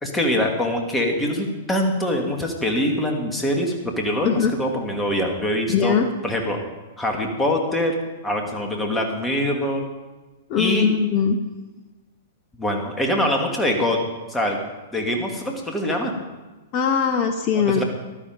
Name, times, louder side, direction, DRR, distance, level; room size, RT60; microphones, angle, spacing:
voice 1, 0.0-6.0 6.2-6.6 7.0-7.9 8.2-9.8 10.6-10.9 12.6-14.0 14.3-16.2 17.6-17.8, left 1 dB, 10° left, 2 dB, 2.5 m, -24 dB
voice 2, 5.7-6.1 10.5-11.4 16.7-17.8, left 7 dB, 40° left, 6 dB, 1.0 m, -20 dB
14.5 x 12.0 x 5.3 m, 1.2 s
figure-of-eight pair, 105°, 0 cm